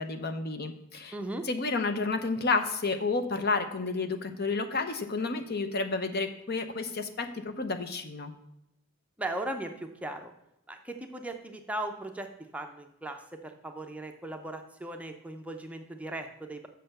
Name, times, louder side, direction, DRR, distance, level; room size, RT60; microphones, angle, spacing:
voice 1, 0.0-1.1 1.5-8.3, left 3 dB, 45° left, 8 dB, 0.8 m, -31 dB
voice 2, 1.1-1.4 9.2-10.3 10.7-16.7, right 1 dB, 5° right, 4 dB, 0.6 m, -38 dB
6.8 x 6.5 x 6.5 m, 0.84 s
head